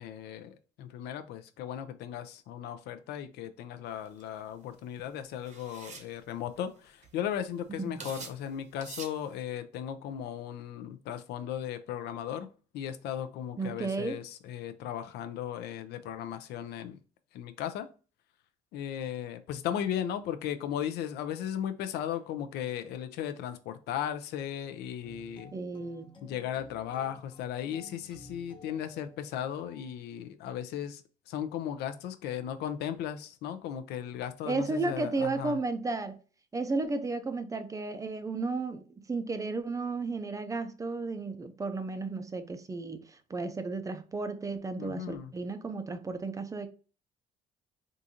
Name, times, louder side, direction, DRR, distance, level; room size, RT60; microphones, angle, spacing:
voice 1, 0.0-12.5 12.7-17.0 17.3-17.9 18.7-25.5 26.2-31.0 31.3-35.6 44.8-45.3, left 10 dB, 75° left, 0.4 m, -36 dB
sound 1, 4.1-4.2 5.5-6.1 6.8-6.9 7.0-7.4 8.0-8.4 8.8-9.2, right 5 dB, 45° right, 0.8 m, -44 dB
voice 2, 13.6-14.2 25.5-26.1 34.4-36.2 36.5-46.7, right 3 dB, 20° right, 0.4 m, -33 dB
sound 2, 25.0-29.9, left 1 dB, 30° left, 0.7 m, -54 dB
3.7 x 2.5 x 2.7 m
cardioid pair, 110°, 17 cm